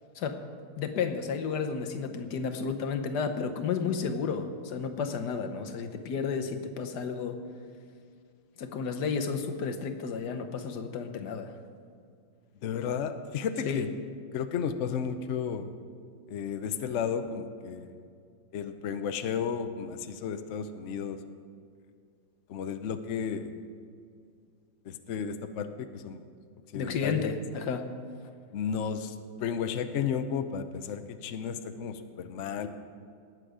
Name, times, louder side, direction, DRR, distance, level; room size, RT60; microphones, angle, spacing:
voice 1, 0.8-7.4 8.6-11.5 13.6-13.9 26.7-27.9, left 5 dB, 65° left, 6 dB, 1.4 m, -32 dB
voice 2, 12.6-13.9 14.3-15.7 16.3-17.9 18.5-21.2 22.5-23.5 24.9-26.2 26.7-27.3 28.5-32.7, left 7 dB, 80° left, 9 dB, 0.6 m, -33 dB
19.5 x 8.0 x 4.9 m, 2.2 s
omnidirectional pair, 2.1 m